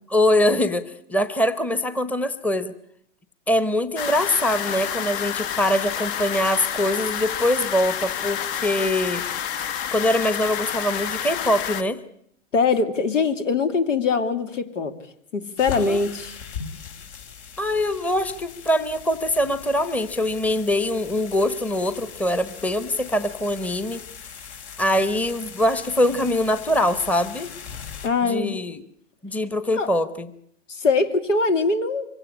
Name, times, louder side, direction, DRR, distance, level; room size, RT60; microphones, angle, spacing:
voice 1, 0.1-2.7 3.5-9.2 9.9-12.0 15.9-16.0 17.6-24.0 24.8-27.5 28.2-28.8 29.2-30.3, left 1 dB, 5° left, 13 dB, 0.9 m, -23 dB
sound 1, 4.0-11.8, left 9 dB, 45° left, 1.2 m, -29 dB
voice 2, 12.5-14.9 15.3-16.4 28.0-28.6 29.7-29.9 30.7-32.1, left 4 dB, 85° left, 10 dB, 2.7 m, -22 dB
sound 2, 15.6-28.1, left 7 dB, 65° left, 4.7 m, -39 dB
24.5 x 17.0 x 9.8 m, 0.71 s
hypercardioid pair, 125°, 37 cm